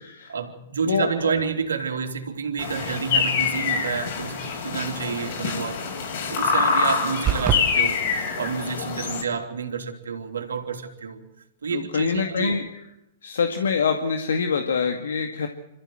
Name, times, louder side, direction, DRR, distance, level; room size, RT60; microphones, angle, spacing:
voice 1, 0.3-5.8 6.3-8.1 8.3-11.2 11.6-12.6, right 6 dB, 80° right, 6 dB, 3.4 m, -29 dB
voice 2, 0.9-1.3 11.7-12.6 13.2-15.5, left 6 dB, 75° left, 5 dB, 2.1 m, -25 dB
sound 1, 2.6-9.2, left 5 dB, 55° left, 7.6 m, -25 dB
sound 2, 7.3-7.7, right 9 dB, 25° right, 1.7 m, -22 dB
27.5 x 14.5 x 7.9 m, 0.87 s
hypercardioid pair, 115°, 0 cm